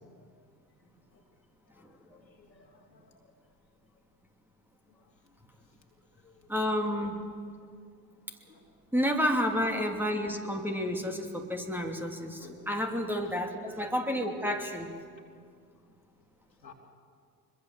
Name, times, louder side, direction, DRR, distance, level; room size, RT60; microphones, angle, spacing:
voice 1, 1.7-3.1 4.9-5.0 6.2-6.5 8.4-8.7 12.4-12.6 16.6-16.7, left 5 dB, 90° left, 1 dB, 2.8 m, -56 dB
voice 2, 6.5-7.2 8.9-14.9, equal, 5° right, 3 dB, 2.9 m, -30 dB
24.5 x 22.0 x 7.5 m, 2.2 s
figure-of-eight pair, 75°, 50 cm